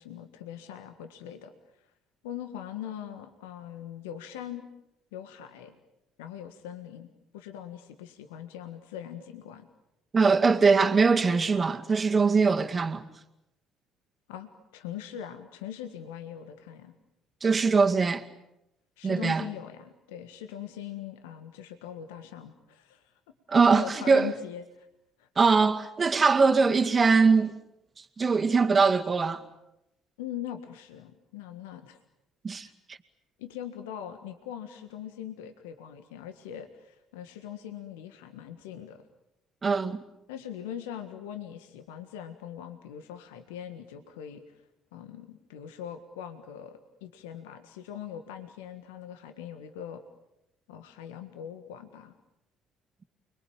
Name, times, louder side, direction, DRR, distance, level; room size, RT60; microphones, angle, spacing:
voice 1, 0.0-1.5 1.8-1.9 2.2-4.7 5.1-5.8 6.2-7.1 7.3-9.7 14.3-16.9 19.0-23.1 23.5-24.9 25.2-25.3 30.2-32.0 32.6-32.7 33.4-39.0 40.3-44.6 44.9-50.0 50.7-52.1, left 10 dB, 75° left, 1.7 m, -41 dB
voice 2, 10.1-13.0 17.4-18.2 19.0-19.5 23.5-24.3 25.4-27.5 28.0-29.4 32.4-33.0 39.6-40.0, right 4 dB, 30° right, 2.3 m, -22 dB
29.5 x 22.5 x 8.9 m
hypercardioid pair, 55°, 0 cm